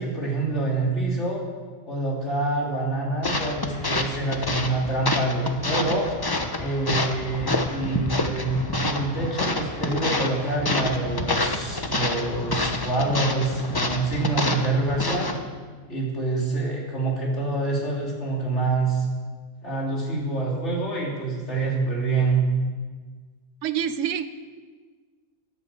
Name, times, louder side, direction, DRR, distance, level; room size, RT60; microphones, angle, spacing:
voice 1, 0.0-1.4 1.9-6.1 6.6-15.3 15.9-19.1 19.6-22.5, right 3 dB, 55° left, -3 dB, 3.7 m, -26 dB
sound 1, 3.2-15.4, left 2 dB, 20° left, 0.8 m, -28 dB
voice 2, 23.6-24.3, right 9 dB, 65° right, 11 dB, 1.1 m, -26 dB
12.0 x 11.0 x 7.7 m, 1.5 s
omnidirectional pair, 1.4 m